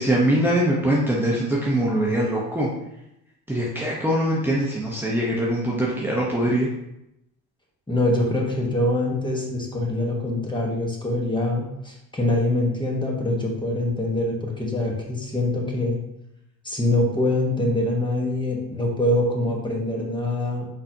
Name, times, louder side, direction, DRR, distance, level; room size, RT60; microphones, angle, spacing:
voice 1, 0.0-2.7 3.5-6.7, right 1 dB, 5° right, -5 dB, 0.9 m, -22 dB
voice 2, 7.9-16.0 16.6-20.7, left 1 dB, 10° left, -1 dB, 1.1 m, -24 dB
4.4 x 3.9 x 2.7 m, 0.84 s
supercardioid pair, 75°, 38 cm